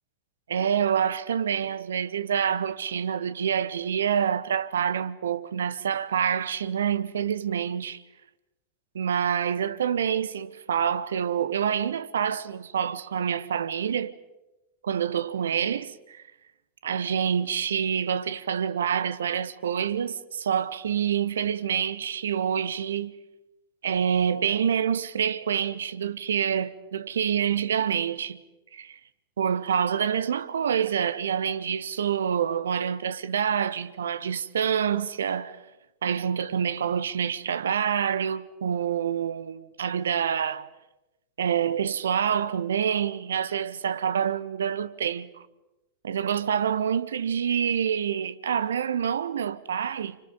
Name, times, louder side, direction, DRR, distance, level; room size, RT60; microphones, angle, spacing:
voice 1, 0.5-8.0 8.9-14.2 14.8-16.2 16.8-23.2 23.8-28.4 28.7-29.0 29.4-35.6 36.0-40.7 41.4-45.3 46.0-50.2, right 8 dB, 65° right, 1.0 m, -27 dB
29.0 x 25.5 x 5.3 m
figure-of-eight pair, 90°, 0 cm